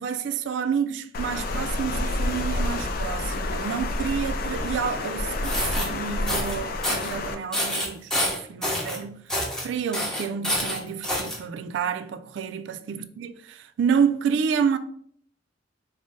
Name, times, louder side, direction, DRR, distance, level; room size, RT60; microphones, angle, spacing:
voice 1, 0.0-9.2 9.6-14.8, right 7 dB, 75° right, 0.3 m, -29 dB
Water, 1.1-7.3, left 2 dB, 50° left, 0.4 m, -29 dB
sound 1, 5.3-5.9 6.3-6.6 6.8-7.1 7.5-9.0 9.3-9.7 9.9-11.4, left 1 dB, 5° left, 0.6 m, -27 dB
3.8 x 2.1 x 3.7 m
head